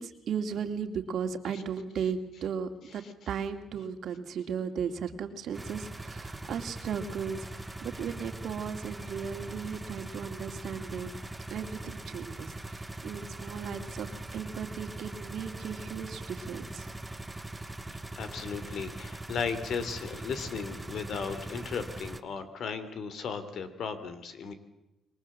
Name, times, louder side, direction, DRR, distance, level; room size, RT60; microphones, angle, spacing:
voice 1, 0.0-11.2 11.5-16.9, right 7 dB, 70° right, 7 dB, 2.3 m, -36 dB
sound 1, 5.5-22.2, right 2 dB, 10° right, 1.6 m, -41 dB
voice 2, 18.2-24.5, left 6 dB, 65° left, 11 dB, 2.9 m, -36 dB
27.0 x 22.0 x 7.5 m, 0.94 s
cardioid pair, 90°, 0 cm